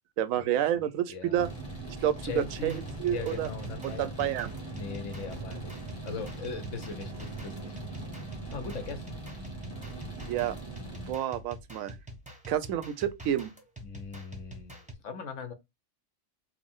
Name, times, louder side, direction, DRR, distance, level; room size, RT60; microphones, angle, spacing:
voice 1, 0.2-1.5 2.0-2.7 3.0-3.5 3.8-4.5 10.3-10.5 11.1-11.9 12.5-13.5, right 11 dB, 85° right, 1.0 m, -29 dB
voice 2, 0.7-1.4 2.2-4.3 4.7-5.8 6.0-7.7 8.5-9.0 13.8-15.5, left 5 dB, 70° left, 1.1 m, -40 dB
sound 1, 1.4-11.1, right 2 dB, 20° left, 1.7 m, -40 dB
sound 2, 2.6-14.9, right 1 dB, 5° right, 0.8 m, -46 dB
4.8 x 2.1 x 3.6 m
omnidirectional pair, 1.4 m